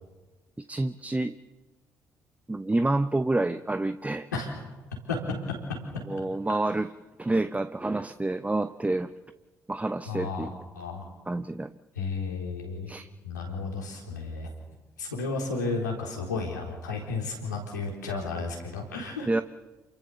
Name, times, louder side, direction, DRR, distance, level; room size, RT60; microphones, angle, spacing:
voice 1, 0.7-1.3 2.5-4.3 6.1-6.9 7.2-9.1 9.7-10.6 11.3-11.7 12.9-13.1 19.3-19.4, right 2 dB, 15° right, 11 dB, 0.9 m, -28 dB
voice 2, 10.1-11.0 12.0-12.9 13.2-14.5 15.0-19.3, left 4 dB, 90° left, -1 dB, 4.0 m, -33 dB
28.5 x 22.0 x 7.0 m, 1.2 s
hypercardioid pair, 45°, 9 cm